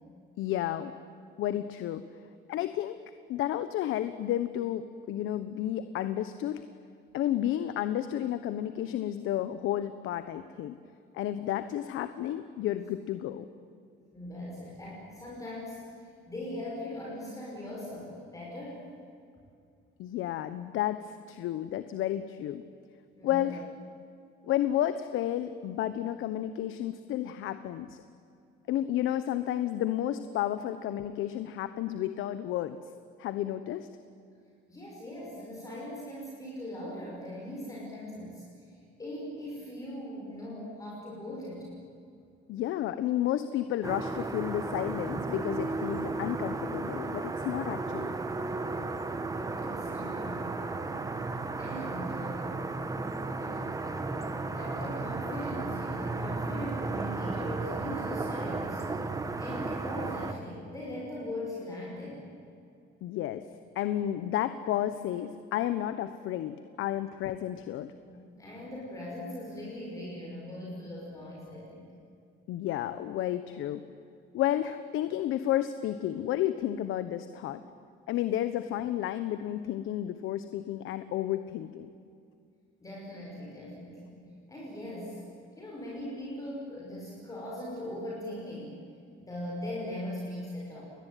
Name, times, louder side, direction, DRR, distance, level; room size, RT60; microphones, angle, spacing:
voice 1, 0.4-0.9 1.4-2.0 2.5-3.0 3.3-6.6 7.1-10.7 11.1-13.5 20.0-22.6 23.2-23.6 24.4-28.0 28.7-32.8 33.2-33.9 42.5-48.1 63.0-63.4 63.7-67.9 72.5-73.8 74.3-77.6 78.1-81.9, left 12 dB, 75° left, 11 dB, 1.2 m, -31 dB
voice 2, 14.1-18.9 23.2-23.6 34.7-41.7 49.6-51.1 51.6-52.6 53.4-53.8 54.5-58.8 59.4-62.3 68.1-71.8 82.8-85.2 85.6-88.8 89.2-90.8, left 1 dB, 15° left, -4 dB, 6.0 m, -40 dB
sound 1, 43.8-60.3, right 3 dB, 15° right, 1.4 m, -34 dB
29.5 x 21.5 x 9.3 m, 2.4 s
cardioid pair, 170°, 21 cm